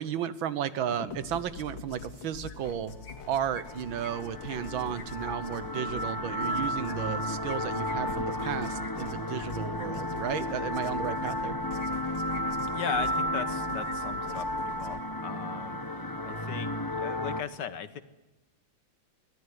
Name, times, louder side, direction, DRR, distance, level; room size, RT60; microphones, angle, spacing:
voice 1, 0.0-3.0 3.3-11.6, right 9 dB, 90° right, 14 dB, 1.8 m, -33 dB
sound 1, 0.9-15.0, left 4 dB, 80° left, 2.7 m, -45 dB
sound 2, 2.1-2.8 3.0-5.1 6.5-9.9 11.2-11.4 11.8-12.5 12.8-13.6 13.8-13.9 14.2-14.5, left 6 dB, 45° left, 1.9 m, -49 dB
sound 3, 3.3-17.4, left 1 dB, 20° left, 0.6 m, -33 dB
voice 2, 12.7-15.8 16.2-18.0, left 7 dB, 65° left, 12 dB, 1.7 m, -37 dB
24.0 x 17.0 x 9.8 m, 1.0 s
omnidirectional pair, 2.1 m